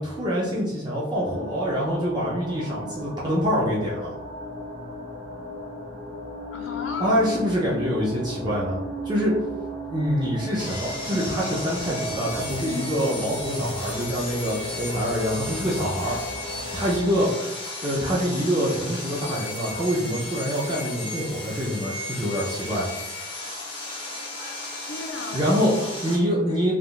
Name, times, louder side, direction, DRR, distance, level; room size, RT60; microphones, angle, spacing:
voice 1, 0.0-4.1 7.0-8.8 9.0-9.3 9.9-16.2 16.7-17.3 17.8-22.9 25.3-25.7 26.0-26.7, equal, 20° right, -6 dB, 0.4 m, -25 dB
sound 1, 1.1-17.3, equal, 70° right, 0.7 m, -35 dB
voice 2, 6.5-7.3 24.8-26.7, left 3 dB, 75° left, 4 dB, 0.5 m, -37 dB
Sawing, 10.6-26.2, left 2 dB, 25° left, 0.7 m, -35 dB
3.5 x 2.3 x 2.3 m, 1.0 s
head